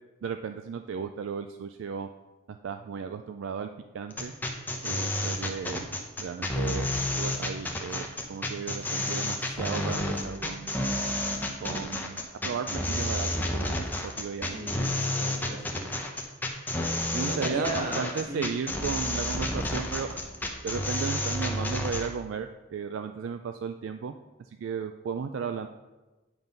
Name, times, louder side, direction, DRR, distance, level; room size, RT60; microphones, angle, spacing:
voice 1, 0.2-2.1 2.5-4.3 4.8-5.9 6.2-10.8 11.6-14.6 17.1-20.2 20.6-24.1 24.4-25.7, right 6 dB, 65° right, 7 dB, 0.3 m, -35 dB
sound 1, 4.1-22.1, left 1 dB, 10° left, 0.7 m, -30 dB
voice 2, 14.5-14.9 15.2-15.9 17.1-18.0 18.3-18.5, right 1 dB, 40° right, -1 dB, 1.6 m, -35 dB
9.1 x 3.9 x 5.3 m, 1.1 s
head